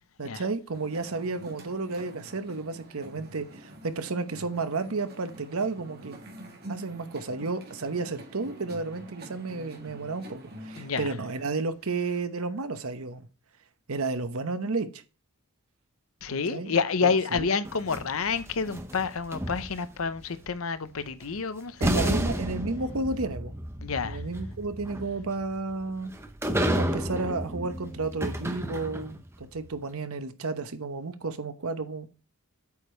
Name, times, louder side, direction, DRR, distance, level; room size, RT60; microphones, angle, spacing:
voice 1, 0.2-6.2 6.7-13.2 13.9-15.0 16.3-17.5 21.8-23.5 24.0-26.1 26.8-29.2 29.5-32.1, right 3 dB, 75° right, 0.9 m, -32 dB
sound 1, 0.7-10.9, right 1 dB, 45° right, 1.9 m, -46 dB
voice 2, 10.8-11.1 16.2-22.2 23.8-24.2, left 5 dB, 70° left, 0.7 m, -29 dB
sound 2, 17.6-20.0 21.2-21.3 21.8-29.3, equal, 10° right, 0.7 m, -31 dB
8.4 x 5.2 x 4.4 m
head